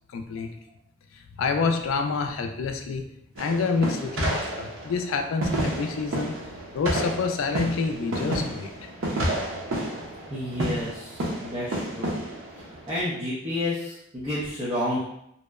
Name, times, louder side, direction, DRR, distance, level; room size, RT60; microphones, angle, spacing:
voice 1, 0.1-0.5 1.1-3.1 3.4-6.4 6.7-8.7, left 4 dB, 90° left, 5 dB, 0.3 m, -27 dB
sound 1, 3.4-13.0, right 1 dB, 80° right, 0.6 m, -30 dB
voice 2, 10.3-12.2 12.6-15.0, left 1 dB, 25° right, -9 dB, 0.5 m, -30 dB
2.7 x 2.0 x 2.2 m, 0.76 s
head